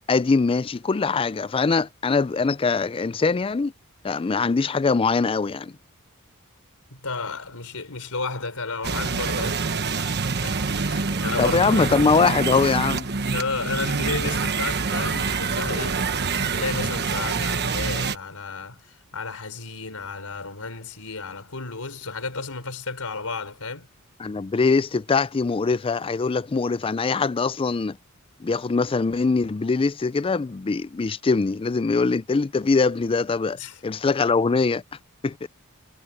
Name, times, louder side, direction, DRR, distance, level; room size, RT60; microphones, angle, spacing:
voice 1, 0.1-3.7 4.0-5.7 11.4-13.1 24.2-28.0 28.4-33.6 33.8-34.8 35.2-35.5, left 4 dB, 25° left, 0.4 m, -22 dB
voice 2, 6.9-11.9 13.3-16.1 16.4-23.9 33.6-33.8, left 4 dB, 75° left, 4.4 m, -33 dB
sound 1, 8.8-18.2, right 4 dB, 50° right, 1.2 m, -26 dB
head